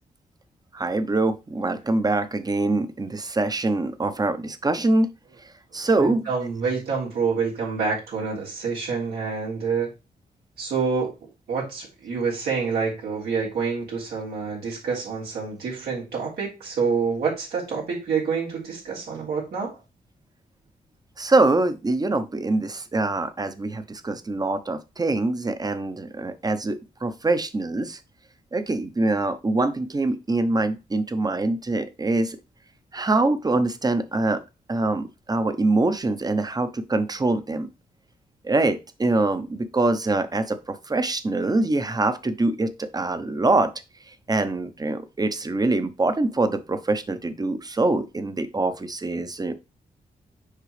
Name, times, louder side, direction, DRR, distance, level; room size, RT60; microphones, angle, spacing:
voice 1, 0.7-5.1 5.4-6.2 21.2-28.0 28.5-32.4 32.9-34.4 34.7-37.7 38.4-43.7 44.1-49.6, right 2 dB, 25° right, 11 dB, 0.9 m, -24 dB
voice 2, 5.9-9.9 10.6-11.1 11.5-19.8, right 5 dB, 90° right, -5 dB, 3.4 m, -27 dB
6.6 x 4.7 x 3.3 m, 0.27 s
cardioid pair, 70°, 16 cm